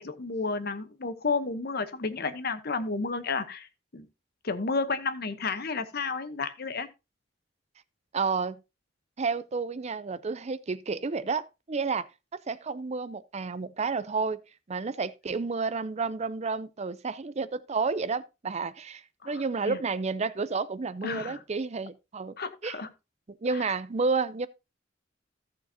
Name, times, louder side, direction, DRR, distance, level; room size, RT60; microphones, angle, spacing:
voice 1, 0.0-3.7 3.9-4.1 4.4-6.9 19.2-19.8 21.0-21.4 22.4-22.9 23.5-23.7, left 4 dB, 55° left, 0.9 m, -32 dB
voice 2, 8.1-8.6 9.2-12.1 12.5-14.4 14.7-22.4 22.6-22.8 23.4-24.5, right 4 dB, 35° right, 0.5 m, -30 dB
14.5 x 6.8 x 2.8 m
head